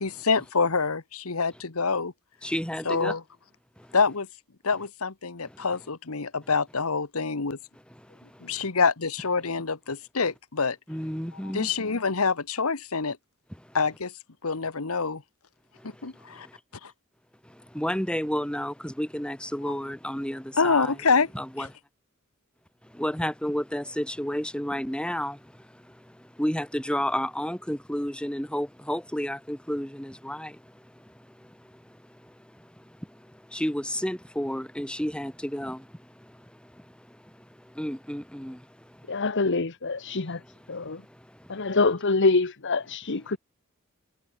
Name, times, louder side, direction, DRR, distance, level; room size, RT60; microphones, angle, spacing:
voice 1, 0.0-2.1 2.8-3.2 3.9-4.3 4.6-7.6 8.4-10.8 11.5-13.2 13.7-14.1 14.4-15.2 16.0-16.5 16.8-16.9 20.6-21.3, left 4 dB, 75° left, 1.4 m, -26 dB
voice 2, 2.4-3.1 10.9-11.7 17.7-20.9 21.3-21.7 23.0-25.3 26.4-30.5 33.5-35.8 37.8-38.6, equal, 5° left, 2.9 m, -30 dB
voice 3, 39.1-40.4 40.7-41.0 41.5-43.4, left 3 dB, 55° left, 1.2 m, -25 dB
head